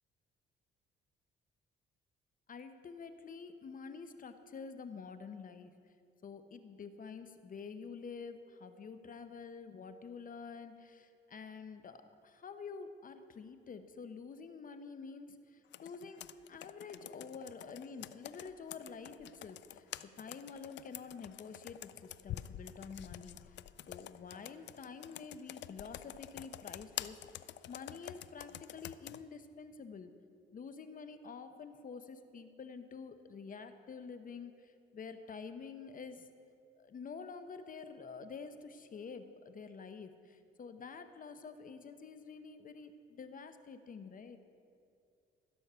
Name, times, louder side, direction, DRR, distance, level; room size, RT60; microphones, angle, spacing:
voice 1, 2.5-5.7 6.2-16.2 16.5-19.9 20.2-23.6 23.9-30.1 30.5-36.3 36.8-44.4, left 5 dB, 45° left, 9 dB, 0.8 m, -48 dB
Computer keyboard, 15.7-29.2, left 12 dB, 65° left, 0.4 m, -48 dB
15.5 x 6.4 x 6.7 m, 2.4 s
cardioid pair, 90°, 20 cm